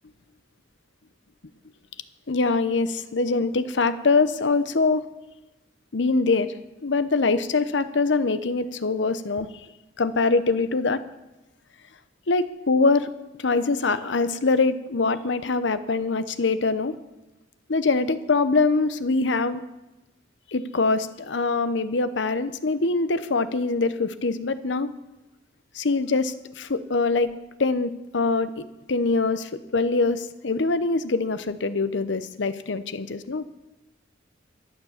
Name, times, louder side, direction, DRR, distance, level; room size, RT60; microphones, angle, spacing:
voice 1, 2.3-5.0 5.9-6.5 6.8-9.5 10.0-11.0 12.3-13.1 13.4-16.9 17.7-19.6 20.5-24.9 25.7-27.3 27.6-28.6 28.9-33.4, left 3 dB, 75° left, 13 dB, 0.8 m, -23 dB
13.0 x 9.7 x 7.2 m, 1.0 s
head